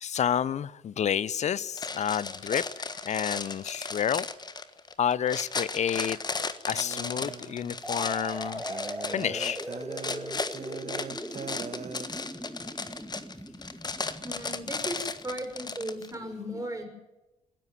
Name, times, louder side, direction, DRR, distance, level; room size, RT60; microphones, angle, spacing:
voice 1, 0.0-4.3 5.0-6.2 6.7-8.6 9.1-9.6, left 9 dB, 40° left, 22 dB, 0.8 m, -29 dB
sound 1, 1.8-16.1, left 4 dB, 25° left, 1.5 m, -35 dB
sound 2, 6.7-12.1, right 7 dB, 40° right, 1.5 m, -42 dB
sound 3, 7.8-15.5, equal, ahead, 2.1 m, -40 dB
voice 2, 14.2-16.9, right 1 dB, 15° right, 2 dB, 6.0 m, -36 dB
28.0 x 11.0 x 9.3 m, 1.0 s
figure-of-eight pair, 45°, 18 cm